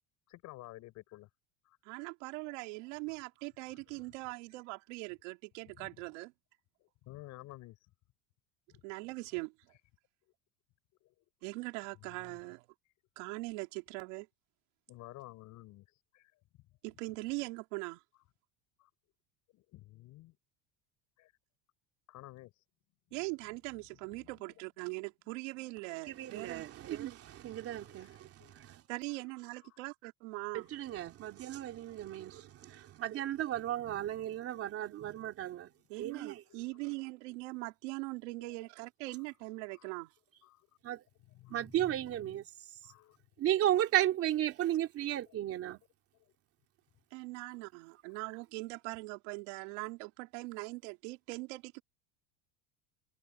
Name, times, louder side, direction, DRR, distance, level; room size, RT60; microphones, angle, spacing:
voice 1, 0.3-1.3 1.6-1.8 2.4-2.6 3.9-4.3 5.8-6.0 6.8-7.8 8.7-8.8 11.0-11.1 11.9-12.4 14.9-15.9 16.1-16.3 18.8-18.9 19.5-20.4 21.2-21.3 22.1-22.5 24.2-24.3 27.7-28.7 29.1-29.2 29.7-29.8 30.4-30.6 32.7-32.8 34.1-34.3 35.1-35.3 36.2-36.8 38.4-38.7 39.8-39.9 40.4-40.6 41.3-42.0 42.8-43.2 45.3-45.4 47.4-47.6 48.1-48.2, left 18 dB, 50° left, 6.2 m, -53 dB
voice 2, 1.8-6.3 8.8-9.5 11.4-12.6 13.2-14.3 16.8-18.0 23.1-26.6 28.9-30.7 35.9-40.1 47.1-51.8, right 25 dB, 80° right, 3.5 m, -41 dB
voice 3, 26.1-28.8 30.5-35.7 36.0-36.4 40.8-41.0 41.5-42.4 43.4-45.8, right 12 dB, 40° right, 3.2 m, -34 dB
cardioid pair, 155°, 36 cm